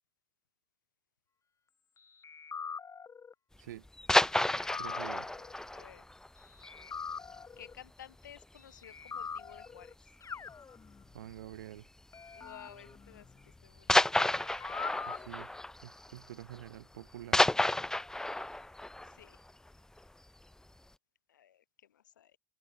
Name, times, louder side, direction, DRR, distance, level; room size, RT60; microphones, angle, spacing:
sound 1, 2.2-3.3 4.4-5.5 6.6-7.7 8.8-9.9 10.2-11.3 12.1-14.0 14.3-15.3, left 6 dB, 30° left, 2.7 m, -43 dB
sound 2, 3.9-7.4 7.7-7.8 8.2-8.4 8.7-8.8 9.7-10.1 11.3-11.5 12.4-12.5 13.9-16.7 16.9-20.1 20.5-20.6, left 1 dB, 5° left, 0.4 m, -31 dB
voice 1, 4.8-5.3 11.1-11.9 15.1-15.5 15.8-17.6, right 13 dB, 80° right, 2.2 m, -47 dB
voice 2, 5.7-6.1 7.6-10.0 12.4-14.2 19.0-19.4 21.3-22.4, left 10 dB, 85° left, 5.4 m, -54 dB
hypercardioid pair, 65°, 10 cm